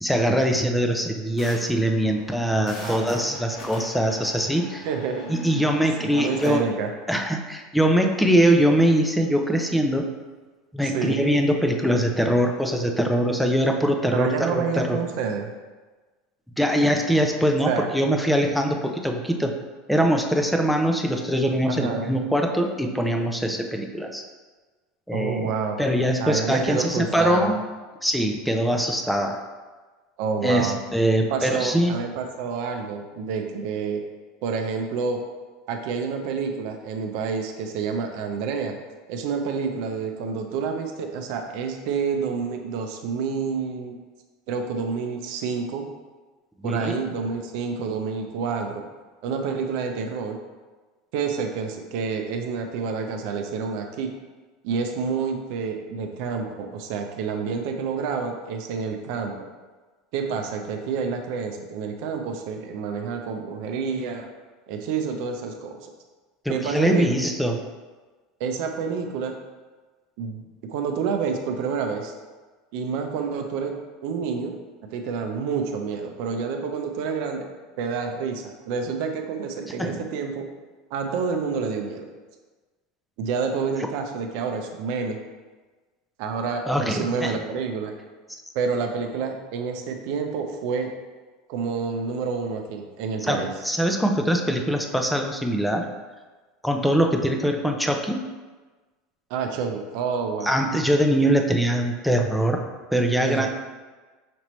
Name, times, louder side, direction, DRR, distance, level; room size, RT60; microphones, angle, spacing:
voice 1, 0.0-4.8 5.3-6.6 7.1-10.1 10.7-15.0 16.6-19.5 19.9-24.2 25.1-25.5 25.8-27.6 28.0-29.4 30.4-31.9 46.6-47.0 66.4-67.6 79.8-80.0 86.7-87.4 88.3-88.4 93.2-95.9 96.6-98.2 100.4-102.6 102.9-103.5, equal, ahead, 3 dB, 0.5 m, -22 dB
sound 1, 1.4-6.5, left 1 dB, 55° left, 1.3 m, -42 dB
voice 2, 2.6-3.3 4.8-5.6 6.0-6.9 10.8-11.2 14.1-15.5 17.6-17.9 21.7-22.1 25.1-25.8 26.2-27.5 30.2-30.8 31.3-34.0 34.4-35.2 35.7-38.8 39.1-44.0 44.5-45.9 46.6-48.8 49.2-50.4 51.1-54.1 54.6-59.4 60.1-64.3 64.7-65.9 66.5-67.1 68.4-69.4 70.2-72.1 72.7-74.6 74.9-77.5 77.8-80.5 80.9-82.1 83.2-85.2 86.2-87.9 88.5-90.9 91.5-93.5 99.3-100.5 103.2-103.5, right 5 dB, 65° right, 4 dB, 0.5 m, -28 dB
5.1 x 2.9 x 3.1 m, 1.3 s
hypercardioid pair, 100°, 0 cm